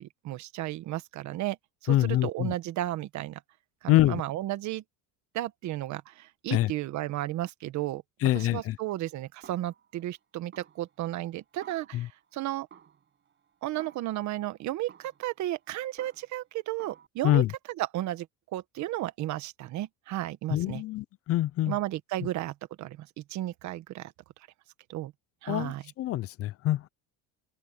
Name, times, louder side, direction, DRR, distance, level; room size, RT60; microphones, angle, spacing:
voice 1, 0.0-1.6 1.8-3.4 3.8-4.8 5.3-8.0 8.3-12.7 13.6-17.4 17.8-18.3 18.5-20.8 21.7-24.1 24.9-25.1 25.4-25.9, right 15 dB, 60° right, 1.4 m, -34 dB
voice 2, 1.9-2.5 3.9-4.2 6.5-6.7 8.2-8.8 11.9-12.1 17.2-17.5 20.5-21.7 25.5-26.9, left 14 dB, 45° left, 0.5 m, -25 dB
Snare drum, 8.3-9.2 9.4-10.2 10.5-12.3 12.7-14.4 14.9-16.5 16.8-17.1, right 8 dB, 35° right, 5.9 m, -55 dB
open air
cardioid pair, 135°, 32 cm